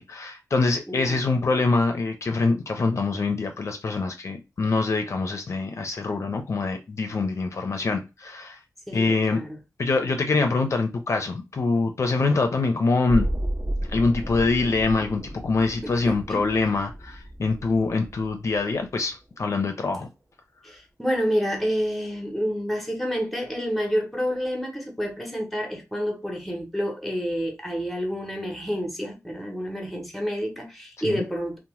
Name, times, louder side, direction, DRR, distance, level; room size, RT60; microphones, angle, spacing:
voice 1, 0.0-8.6 8.9-9.4 9.8-13.3 13.9-20.1 31.0-31.2, left 3 dB, 55° left, 0.4 m, -24 dB
voice 2, 0.9-1.2 8.9-9.6 15.8-16.4 20.6-31.6, equal, ahead, 0.7 m, -29 dB
sound 1, 13.1-19.0 19.4-19.5, right 1 dB, 25° right, 0.4 m, -33 dB
2.7 x 2.0 x 3.0 m
wide cardioid pair, 125°, 6 cm